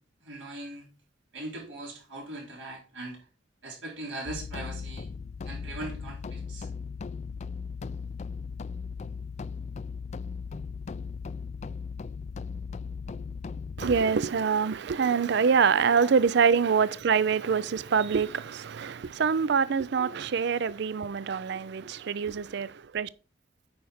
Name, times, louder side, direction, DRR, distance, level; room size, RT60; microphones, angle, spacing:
voice 1, 0.2-0.8 1.3-3.2 3.6-5.1 5.5-6.7 15.9-16.1, right 2 dB, 80° right, 4.5 m, -40 dB
sound 1, 4.3-14.0, left 5 dB, 35° left, 0.3 m, -37 dB
voice 2, 13.8-23.1, right 6 dB, 60° right, 0.4 m, -25 dB
8.7 x 5.7 x 4.9 m
head